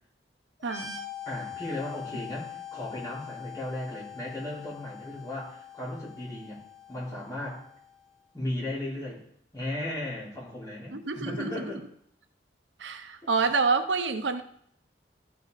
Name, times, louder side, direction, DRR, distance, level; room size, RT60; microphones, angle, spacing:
sound 1, 0.6-8.1, left 8 dB, 40° left, 2.6 m, -43 dB
voice 1, 0.6-1.0 10.9-11.7 12.8-14.4, right 4 dB, 90° right, 0.7 m, -28 dB
voice 2, 1.3-6.6 6.9-7.6 8.3-9.2 9.5-11.8 13.2-13.3, left 1 dB, 20° left, 4.3 m, -36 dB
14.5 x 5.4 x 4.1 m
head